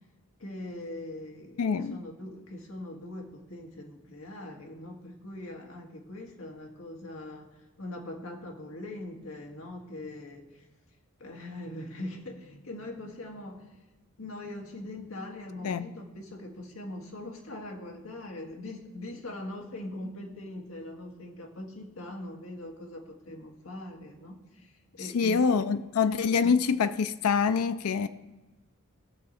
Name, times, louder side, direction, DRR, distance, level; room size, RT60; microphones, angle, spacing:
voice 1, 0.4-7.5 7.8-10.6 11.2-13.7 14.2-25.6 26.4-26.6, left 1 dB, 70° left, 1.8 m, -41 dB
voice 2, 1.6-2.0 15.6-15.9 25.1-28.1, left 5 dB, 90° left, 0.4 m, -25 dB
18.0 x 6.4 x 4.3 m
head